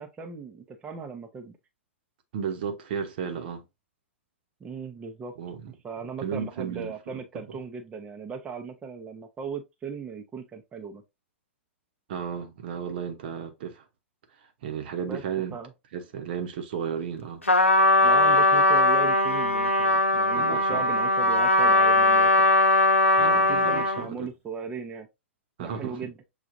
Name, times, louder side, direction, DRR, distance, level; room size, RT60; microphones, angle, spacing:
voice 1, 0.0-1.6 4.6-5.3 5.7-11.0 15.1-15.2 15.5-15.7 18.0-22.5 23.3-25.1 25.6-26.1, right 5 dB, 15° right, 0.6 m, -37 dB
voice 2, 2.3-3.6 5.4-5.7 6.2-7.6 12.1-13.8 14.6-15.6 15.9-17.4 20.3-20.8 23.1-24.3 25.6-26.1, right 7 dB, 50° right, 0.9 m, -34 dB
Trumpet, 17.5-24.1, left 2 dB, 85° left, 0.8 m, -20 dB
6.7 x 2.4 x 2.5 m
figure-of-eight pair, 105°, 7 cm